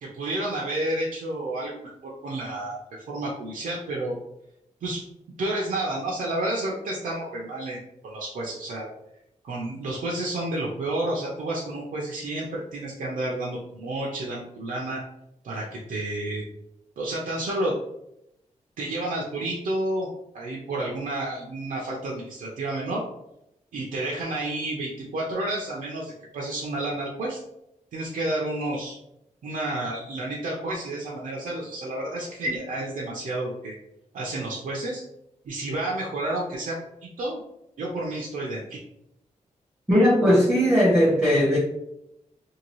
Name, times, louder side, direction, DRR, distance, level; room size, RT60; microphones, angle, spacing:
voice 1, 0.0-2.8 3.1-4.2 4.8-5.0 5.4-8.9 9.4-15.0 15.4-16.4 17.0-17.8 18.8-20.1 20.3-23.0 23.7-27.4 27.9-29.0 29.4-33.8 34.1-35.0 35.4-37.4 37.8-38.8, right 1 dB, 90° right, -3 dB, 0.6 m, -30 dB
voice 2, 39.9-41.6, equal, 10° right, -10 dB, 1.0 m, -18 dB
2.8 x 2.6 x 3.0 m, 0.83 s
wide cardioid pair, 105°, 13 cm